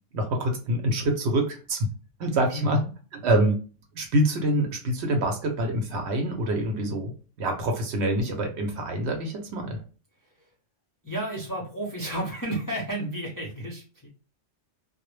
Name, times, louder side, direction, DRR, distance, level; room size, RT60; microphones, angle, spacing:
voice 1, 0.1-1.9 2.2-3.6 3.9-9.8, right 1 dB, 65° right, 4 dB, 0.8 m, -26 dB
voice 2, 11.0-14.1, right 1 dB, 25° left, -4 dB, 0.4 m, -32 dB
2.1 x 2.0 x 3.1 m, 0.36 s
omnidirectional pair, 1.3 m